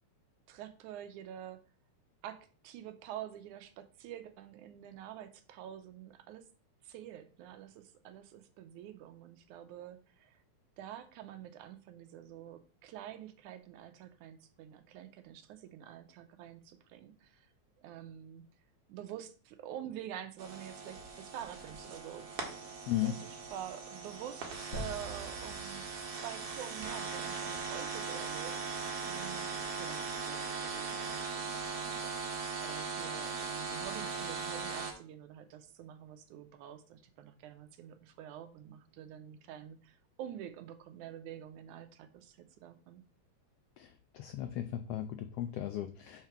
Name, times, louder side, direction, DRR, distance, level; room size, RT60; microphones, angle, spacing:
voice 1, 0.5-1.6 2.2-6.5 6.8-10.4 10.8-17.5 17.8-18.5 18.9-22.7 23.0-25.9 26.2-43.0, right 10 dB, 85° right, 10 dB, 2.2 m, -47 dB
sound 1, 20.4-34.9, right 5 dB, 55° right, 2.3 m, -39 dB
sound 2, 24.7-26.7, left 1 dB, 30° left, 1.9 m, -45 dB
voice 2, 43.8-46.3, left 12 dB, 90° left, 9 dB, 1.3 m, -36 dB
5.7 x 4.5 x 5.8 m, 0.38 s
omnidirectional pair, 3.4 m